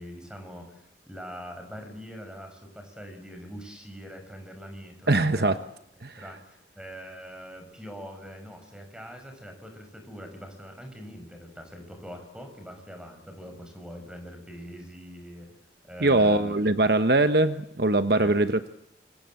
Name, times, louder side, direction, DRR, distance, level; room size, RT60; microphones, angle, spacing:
voice 1, 0.0-5.6 6.2-15.5 15.8-16.5 18.2-18.4, equal, 5° right, 5 dB, 6.1 m, -43 dB
voice 2, 5.1-5.6 6.0-6.1 16.0-18.7, right 2 dB, 60° right, 9 dB, 1.1 m, -22 dB
26.5 x 24.5 x 7.7 m, 0.78 s
head